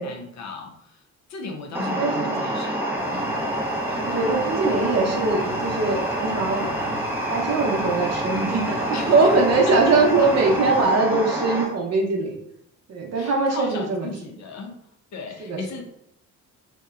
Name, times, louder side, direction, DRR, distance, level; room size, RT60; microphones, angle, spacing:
voice 1, 0.0-3.4 3.8-4.0 8.9-9.3 9.7-9.8 10.2-10.3 13.1-14.8 15.1-15.8, left 4 dB, 50° left, 3 dB, 0.6 m, -36 dB
sound 1, 1.7-11.6, right 1 dB, 5° right, 0.6 m, -27 dB
voice 2, 2.0-2.4 3.9-6.8 7.3-12.4 12.9-14.1 15.4-15.6, right 3 dB, 45° right, 0 dB, 0.7 m, -22 dB
sound 2, 3.0-10.8, left 1 dB, 15° left, 1.0 m, -41 dB
2.8 x 2.1 x 2.3 m, 0.75 s
supercardioid pair, 65°, 35 cm